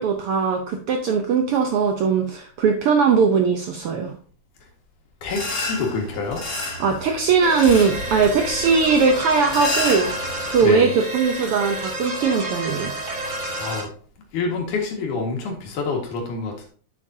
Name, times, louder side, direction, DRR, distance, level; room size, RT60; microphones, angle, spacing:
voice 1, 0.0-4.1 6.8-10.1 10.5-12.9, right 5 dB, 80° right, 4 dB, 1.2 m, -20 dB
voice 2, 5.2-6.4 10.6-11.0 13.5-13.9 14.3-16.7, left 4 dB, 85° left, 1 dB, 3.2 m, -27 dB
sound 1, 5.3-10.6, left 2 dB, 35° left, 1.8 m, -30 dB
sound 2, 7.4-13.8, right 1 dB, 35° right, 1.5 m, -30 dB
8.7 x 7.3 x 2.7 m, 0.43 s
omnidirectional pair, 3.4 m